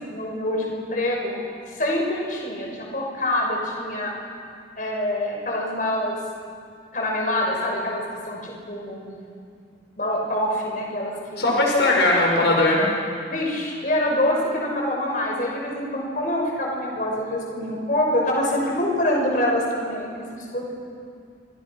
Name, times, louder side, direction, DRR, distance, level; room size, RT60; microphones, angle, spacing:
voice 1, 0.1-1.4 1.8-4.1 4.8-6.2 6.9-9.1 10.0-11.5 13.3-20.7, left 1 dB, 50° left, -1 dB, 6.1 m, -25 dB
voice 2, 11.4-12.9, left 2 dB, 85° left, -1 dB, 5.5 m, -19 dB
29.0 x 26.5 x 6.1 m, 2.3 s
head